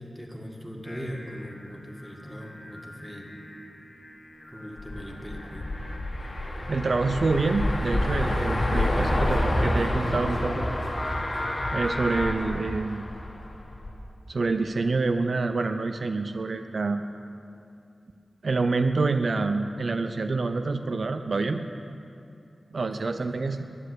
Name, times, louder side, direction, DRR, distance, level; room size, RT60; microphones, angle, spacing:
voice 1, 0.0-3.3 4.5-5.7 22.7-23.4, equal, ahead, 0 dB, 1.8 m, -40 dB
Singing, 0.8-12.3, left 1 dB, 20° left, 1.4 m, -39 dB
sound 1, 4.8-14.0, left 1 dB, 45° left, 1.6 m, -28 dB
voice 2, 6.7-10.6 11.7-13.0 14.3-17.0 18.4-21.6 22.7-23.6, right 3 dB, 65° right, 8 dB, 0.5 m, -27 dB
11.0 x 9.8 x 8.0 m, 2.5 s
wide cardioid pair, 80°, 0 cm